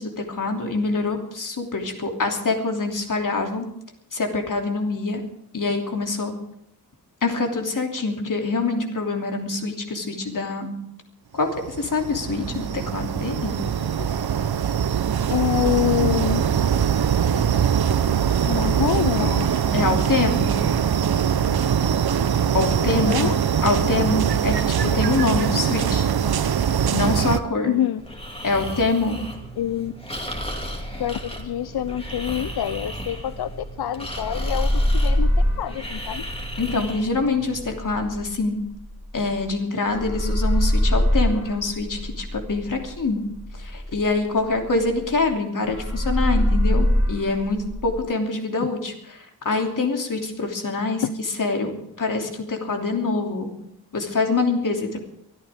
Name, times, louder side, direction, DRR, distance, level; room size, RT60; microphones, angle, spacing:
voice 1, 0.0-3.6 4.1-5.2 5.5-6.3 7.2-10.7 11.3-11.5 11.8-13.6 19.7-20.6 22.5-23.3 23.6-26.1 26.9-27.7 28.4-29.2 36.6-38.6 39.1-43.2 43.6-51.0 51.4-53.5 53.9-55.0, left 3 dB, 55° left, 3 dB, 3.0 m, -25 dB
sound 1, 11.5-27.4, right 8 dB, 75° right, 0.9 m, -22 dB
voice 2, 15.3-16.4 18.4-20.0 23.1-23.4 27.7-28.0 29.6-29.9 31.0-35.3 35.6-36.2 51.0-51.1, left 11 dB, 85° left, 14 dB, 0.6 m, -26 dB
Breathing, 28.0-37.7, equal, 15° left, 2.6 m, -36 dB
sound 2, 30.5-33.8 34.1-39.5 39.8-45.3 45.6-48.0, left 1 dB, 40° left, 6.8 m, -24 dB
23.0 x 14.0 x 3.7 m, 0.78 s
wide cardioid pair, 145°, 37 cm